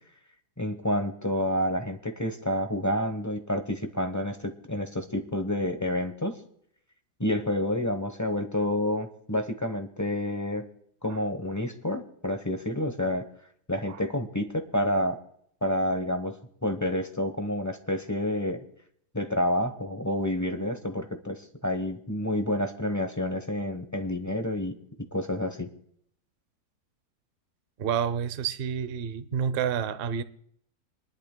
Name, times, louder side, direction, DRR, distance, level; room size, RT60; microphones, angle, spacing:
voice 1, 0.6-6.4 7.2-10.6 11.0-13.2 13.7-15.2 15.6-16.4 16.6-18.6 19.1-24.7 25.1-25.7, left 1 dB, 15° left, 0.7 m, -29 dB
voice 2, 27.8-30.2, right 8 dB, 55° right, 0.6 m, -29 dB
27.5 x 11.5 x 2.2 m
omnidirectional pair, 1.7 m